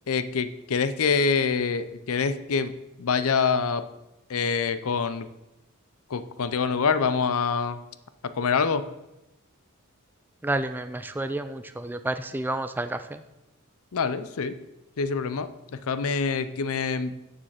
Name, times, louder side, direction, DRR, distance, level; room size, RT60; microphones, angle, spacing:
voice 1, 0.1-2.7 3.0-3.9 4.3-5.3 6.1-7.8 8.2-8.9 13.9-14.6 15.0-17.2, left 5 dB, 65° left, 13 dB, 0.6 m, -25 dB
voice 2, 10.4-13.2, right 2 dB, 10° right, 9 dB, 0.4 m, -30 dB
7.3 x 6.8 x 6.5 m, 0.93 s
head